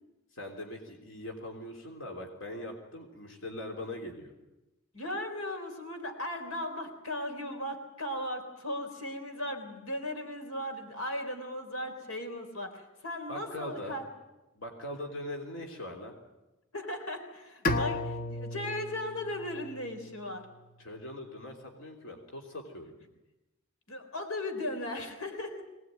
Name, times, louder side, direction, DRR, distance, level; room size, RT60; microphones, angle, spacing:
voice 1, 0.3-4.3 13.3-14.0 14.6-16.1 20.8-22.9, left 1 dB, 65° left, 2 dB, 3.5 m, -41 dB
voice 2, 4.9-14.0 16.7-20.5 23.9-25.6, left 1 dB, 90° left, 5 dB, 3.9 m, -37 dB
Bowed string instrument, 17.6-20.7, left 2 dB, 45° left, 1.1 m, -35 dB
22.5 x 19.0 x 9.4 m, 1.0 s
head